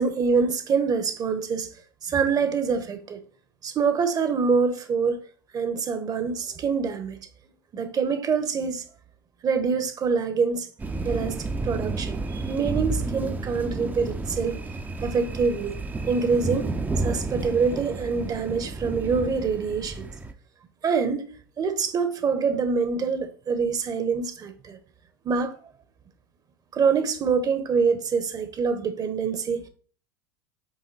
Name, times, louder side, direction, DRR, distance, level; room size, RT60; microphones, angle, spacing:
voice 1, 0.0-1.7 2.0-3.2 3.6-5.2 5.5-7.2 7.7-8.8 9.4-10.7 11.0-14.6 15.0-15.8 16.1-16.7 17.0-20.1 20.8-21.3 21.6-24.8 25.2-25.6 26.7-29.6, right 5 dB, 30° right, 1.3 m, -25 dB
sound 1, 10.8-20.3, right 3 dB, 15° right, 0.8 m, -31 dB
8.2 x 3.7 x 4.2 m
figure-of-eight pair, 80°, 12 cm